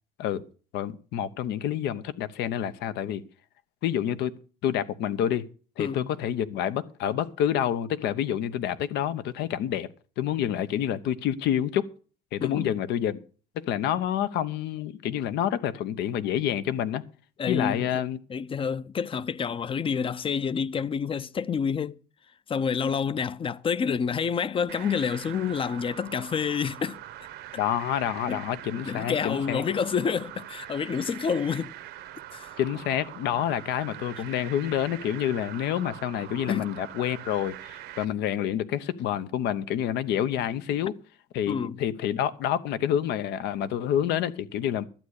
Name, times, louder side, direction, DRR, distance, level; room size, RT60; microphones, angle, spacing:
voice 1, 0.7-3.2 3.8-4.3 4.6-5.5 5.8-9.9 10.2-11.9 12.3-13.2 13.5-17.0 17.5-18.2 27.6-29.6 32.6-40.9 41.3-44.8, left 10 dB, 80° left, 1.0 m, -28 dB
voice 2, 5.8-6.1 12.4-12.7 17.4-17.9 18.3-22.0 22.5-27.0 28.3-28.4 28.9-31.7 32.3-32.6 36.5-36.7 41.5-41.8, left 6 dB, 30° left, 0.6 m, -28 dB
sound 1, 24.7-38.0, right 13 dB, 80° right, 1.1 m, -43 dB
12.0 x 8.6 x 6.5 m
cardioid pair, 110°, 17 cm